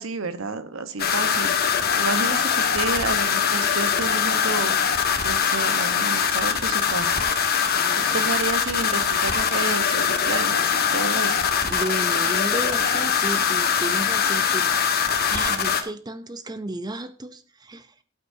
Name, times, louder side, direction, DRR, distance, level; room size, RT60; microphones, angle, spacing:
voice 1, 0.0-1.5 2.0-4.8 5.2-7.2 8.0-11.4, right 4 dB, 70° right, 1.1 m, -30 dB
sound 1, 1.0-15.8, left 7 dB, 50° left, 1.5 m, -22 dB
voice 2, 7.7-8.2 11.6-14.8 15.3-17.9, right 2 dB, 20° right, 0.6 m, -33 dB
17.0 x 8.5 x 2.7 m
head